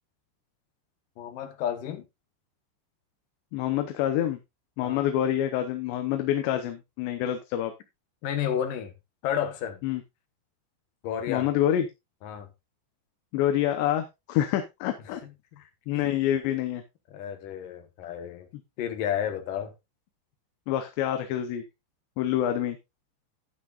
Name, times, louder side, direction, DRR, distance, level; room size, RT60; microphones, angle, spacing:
voice 1, 1.2-2.0 4.8-5.1 8.2-8.9 9.2-9.8 11.0-11.5 12.2-12.5 15.1-15.2 15.9-16.0 17.1-18.5 18.8-19.7, left 9 dB, 65° left, 2.4 m, -31 dB
voice 2, 3.5-4.4 4.8-7.7 9.8-10.0 11.3-11.9 13.3-15.2 15.9-16.8 20.7-21.6 22.2-22.8, left 11 dB, 80° left, 3.1 m, -27 dB
12.0 x 9.7 x 2.5 m
omnidirectional pair, 5.1 m